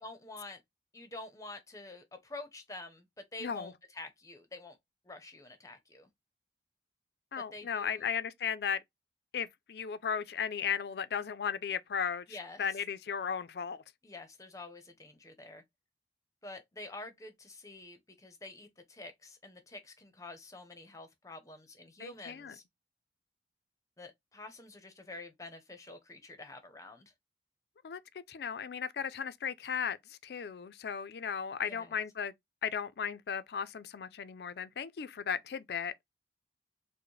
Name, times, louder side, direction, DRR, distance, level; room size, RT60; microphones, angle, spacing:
voice 1, 0.0-0.6 0.9-3.1 3.3-4.8 5.0-6.1 7.4-8.1 12.3-12.8 14.0-15.6 16.4-22.6 24.0-27.1 31.6-31.9, left 2 dB, 20° left, 0.7 m, -48 dB
voice 2, 3.4-3.7 7.3-8.8 9.3-13.8 22.0-22.6 27.8-28.0 28.3-32.3 32.6-35.9, left 7 dB, 60° left, 0.4 m, -36 dB
4.7 x 2.1 x 3.1 m
head